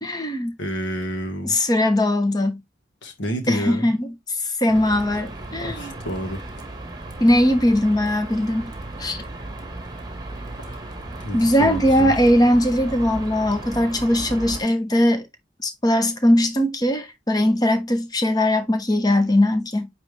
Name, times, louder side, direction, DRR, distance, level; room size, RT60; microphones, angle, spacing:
voice 1, 0.0-0.5 1.4-2.6 3.5-4.1 4.6-5.9 7.2-8.7 9.0-9.2 11.3-15.3 15.6-19.9, left 1 dB, 20° left, 0.9 m, -20 dB
voice 2, 0.6-1.5 3.0-3.9 5.6-6.4 10.6-12.1, equal, 65° left, 1.8 m, -30 dB
sound 1, 4.7-14.6, right 2 dB, 20° right, 1.4 m, -35 dB
9.0 x 3.2 x 3.3 m
head